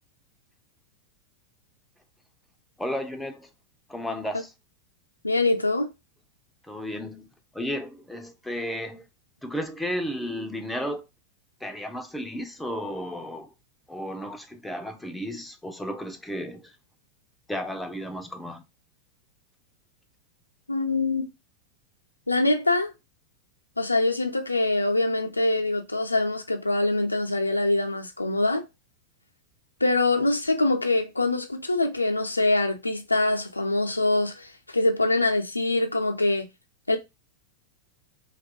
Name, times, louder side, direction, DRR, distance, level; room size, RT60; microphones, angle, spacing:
voice 1, 2.8-3.5 3.9-4.5 6.6-7.3 7.5-9.1 9.4-11.0 11.6-13.5 13.9-16.7 17.5-18.6, equal, 5° left, 0.4 m, -33 dB
voice 2, 5.2-5.9 20.7-21.3 22.3-22.9 23.8-28.6 29.8-36.5 36.9-37.0, left 2 dB, 85° left, 0.4 m, -24 dB
2.7 x 2.3 x 2.5 m
figure-of-eight pair, 90°, 0 cm